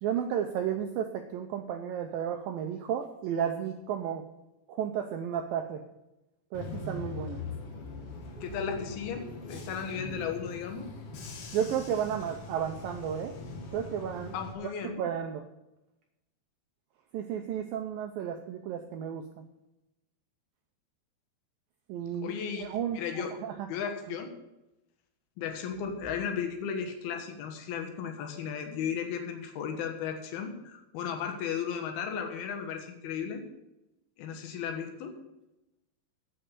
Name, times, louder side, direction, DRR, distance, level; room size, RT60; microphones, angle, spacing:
voice 1, 0.0-4.2 4.7-5.8 6.5-7.4 11.5-13.4 13.7-14.3 14.6-14.7 15.0-15.4 17.1-19.2 21.9-22.3 22.6-23.7, right 9 dB, 85° right, 5 dB, 2.0 m, -33 dB
Bus / Engine, 6.5-14.5, left 3 dB, 85° left, 1.2 m, -41 dB
voice 2, 8.4-10.9 14.3-15.0 22.2-23.3 23.7-24.3 25.4-33.4 34.2-35.2, left 7 dB, 70° left, 5 dB, 3.1 m, -35 dB
9.1 x 7.8 x 8.1 m, 0.94 s
omnidirectional pair, 4.9 m